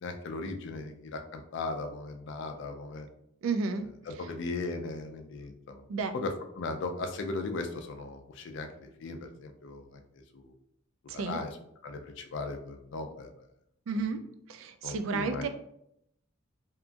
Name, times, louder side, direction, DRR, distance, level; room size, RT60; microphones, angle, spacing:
voice 1, 0.0-3.1 4.1-5.8 6.1-10.5 11.1-11.6 11.8-13.3 14.8-15.4, left 3 dB, 65° left, 5 dB, 0.4 m, -37 dB
voice 2, 3.4-3.8 5.9-6.1 11.1-11.4 13.9-14.2 14.5-15.5, right 4 dB, 80° right, 8 dB, 0.3 m, -31 dB
2.8 x 2.5 x 2.3 m, 0.77 s
head